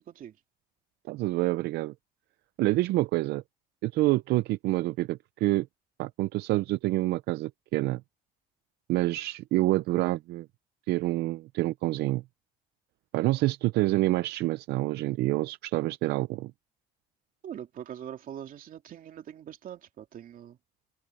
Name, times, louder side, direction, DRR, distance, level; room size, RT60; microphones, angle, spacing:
voice 1, 1.1-1.9 2.6-3.4 3.8-5.7 6.0-8.0 8.9-10.5 10.9-12.2 13.1-16.5, right 18 dB, 80° right, 0.5 m, -27 dB
voice 2, 17.4-20.6, right 10 dB, 55° right, 2.8 m, -42 dB
open air
cardioid pair, 110°, 17 cm